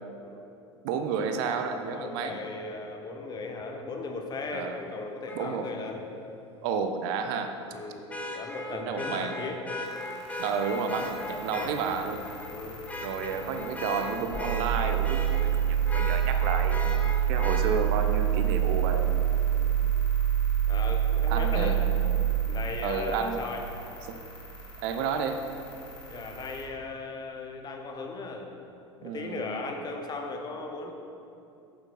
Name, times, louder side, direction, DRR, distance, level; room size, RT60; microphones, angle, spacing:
voice 1, 0.8-2.4 4.5-4.8 5.3-5.7 6.6-7.6 8.7-9.4 10.4-12.3 13.0-19.1 21.3-21.8 22.8-23.4 24.1-24.2 24.8-25.4 29.0-29.4, right 6 dB, 50° right, 7 dB, 0.6 m, -31 dB
voice 2, 1.9-6.0 7.7-8.1 8.3-9.6 12.5-12.9 19.5-19.8 20.7-21.8 22.5-23.6 26.1-28.5 29.0-30.9, left 3 dB, 25° left, 3 dB, 1.0 m, -37 dB
Vehicle horn car horn honking, 5.3-5.4 8.1-11.7 12.2-12.5 12.9-15.5 15.9-17.6 19.5-19.6, left 1 dB, 10° left, 1.1 m, -37 dB
sound 1, 9.8-26.6, equal, 75° left, 1.8 m, -46 dB
sound 2, 14.3-22.3, right 10 dB, 90° right, 1.7 m, -25 dB
8.4 x 7.7 x 4.2 m, 2.7 s
figure-of-eight pair, 80°, 15 cm